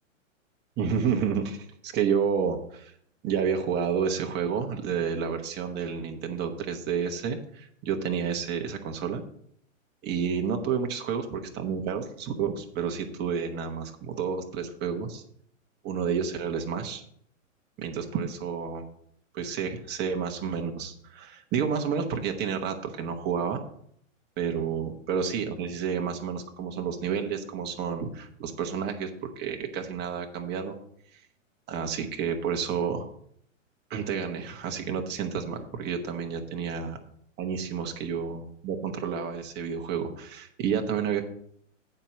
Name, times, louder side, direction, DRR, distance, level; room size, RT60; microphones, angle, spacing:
voice 1, 0.8-2.9 3.2-9.2 10.0-15.2 15.8-17.0 17.8-18.9 19.3-23.6 24.4-30.7 31.7-33.1 33.9-37.0 37.4-41.2, right 6 dB, 25° right, 4 dB, 1.2 m, -30 dB
9.0 x 4.5 x 7.1 m, 0.67 s
hypercardioid pair, 125°, 39 cm